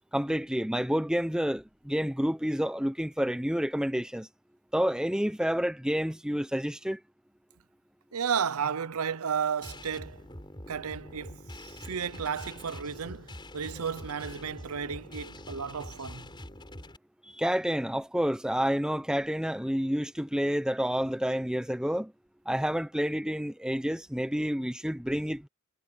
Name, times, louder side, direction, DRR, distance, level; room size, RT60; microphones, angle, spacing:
voice 1, 0.1-4.3 4.7-7.0 17.2-22.1 22.5-25.5, equal, 5° right, 0.7 m, -29 dB
voice 2, 8.1-10.2 10.7-16.3, right 7 dB, 85° right, 0.7 m, -33 dB
sound 1, 9.6-17.0, left 1 dB, 20° left, 7.0 m, -45 dB
head